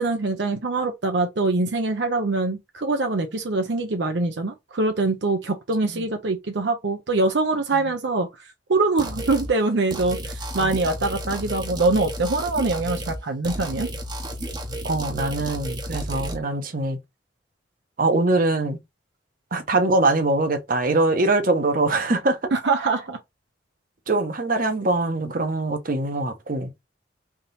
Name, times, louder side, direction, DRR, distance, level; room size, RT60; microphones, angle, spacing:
voice 1, 0.0-8.3 8.7-13.9 22.5-23.2, right 3 dB, 75° right, 0.7 m, -24 dB
sound 1, 9.0-9.5 9.9-13.2 13.4-16.4, right 1 dB, 25° right, 0.8 m, -32 dB
voice 2, 14.8-17.0 18.0-18.8 19.5-22.4 24.1-26.7, right 2 dB, 50° right, 0.9 m, -23 dB
3.6 x 2.9 x 4.0 m
head